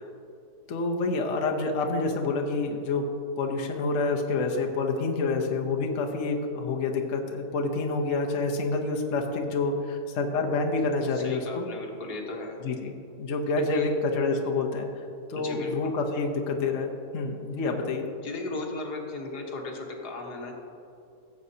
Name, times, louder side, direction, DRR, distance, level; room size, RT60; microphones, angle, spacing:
voice 1, 0.7-3.0 3.4-11.7 12.6-12.9 13.2-14.9 15.3-18.1, left 3 dB, 55° left, 2 dB, 1.1 m, -28 dB
voice 2, 11.1-12.6 13.6-13.9 15.4-16.0 18.2-20.5, left 3 dB, 80° left, 1 dB, 1.8 m, -36 dB
16.0 x 7.7 x 2.8 m, 2.8 s
omnidirectional pair, 1.7 m